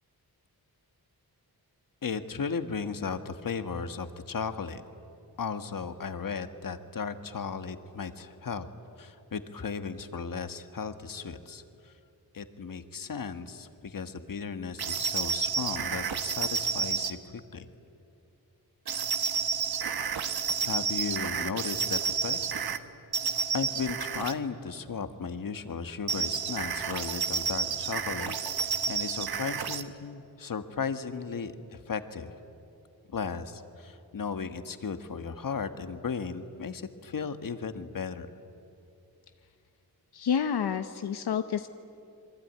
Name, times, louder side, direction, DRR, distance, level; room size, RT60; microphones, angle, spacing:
voice 1, 2.0-4.8 5.4-8.7 9.0-11.9 12.3-17.7 20.2-22.4 23.5-32.3 33.1-38.3, left 5 dB, 60° left, 9 dB, 1.5 m, -36 dB
sound 1, 14.8-17.1 18.9-22.8 23.1-24.4 26.1-29.8, right 6 dB, 70° right, 1.3 m, -30 dB
voice 2, 40.1-41.7, left 7 dB, 85° left, 8 dB, 0.9 m, -29 dB
27.5 x 22.5 x 9.4 m, 2.7 s
wide cardioid pair, 100°, 38 cm